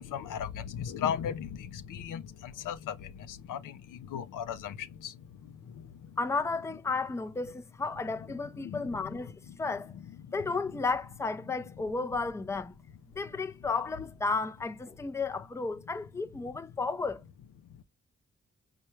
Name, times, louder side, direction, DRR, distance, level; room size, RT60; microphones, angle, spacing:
voice 1, 0.0-5.2 5.7-6.1 8.6-8.8, left 9 dB, 80° left, 0.5 m, -37 dB
voice 2, 6.2-9.9 10.3-12.7 13.2-17.2, left 4 dB, 10° left, 0.4 m, -33 dB
4.5 x 2.2 x 3.0 m
supercardioid pair, 45°, 32 cm